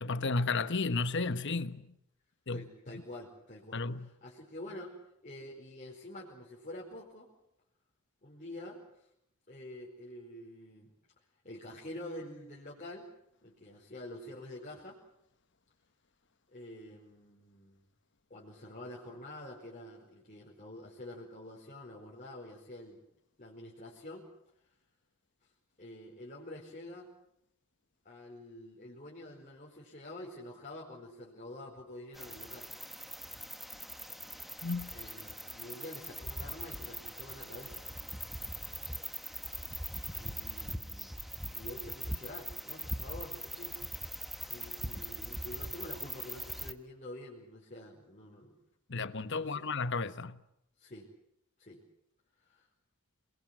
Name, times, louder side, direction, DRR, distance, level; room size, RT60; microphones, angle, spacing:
voice 1, 0.0-1.8 2.5-2.6 3.7-4.1 34.6-34.9 48.9-50.4, left 3 dB, 55° left, 1.2 m, -33 dB
voice 2, 2.5-4.9 5.2-7.3 8.2-9.1 9.5-10.9 11.4-13.1 13.4-15.0 16.5-17.8 18.3-23.0 23.4-24.3 25.8-27.1 28.0-32.7 34.9-37.9 40.2-41.2 41.5-43.7 44.5-48.6 49.3-49.7 50.8-51.1 51.6-51.8 52.4-52.7, left 1 dB, 35° left, 4.8 m, -47 dB
sound 1, 32.2-46.7, equal, ahead, 1.2 m, -41 dB
28.0 x 21.5 x 7.7 m
head